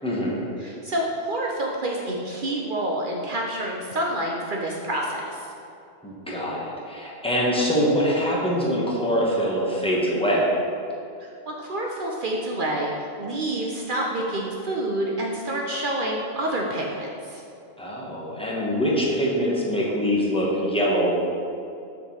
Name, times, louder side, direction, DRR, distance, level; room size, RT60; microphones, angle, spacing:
voice 1, 0.0-0.4 6.0-10.4 17.8-21.2, equal, 5° left, -5 dB, 1.2 m, -24 dB
voice 2, 0.6-5.4 11.2-17.4, right 1 dB, 55° right, -1 dB, 0.8 m, -28 dB
6.6 x 3.8 x 6.3 m, 2.6 s
omnidirectional pair, 1.1 m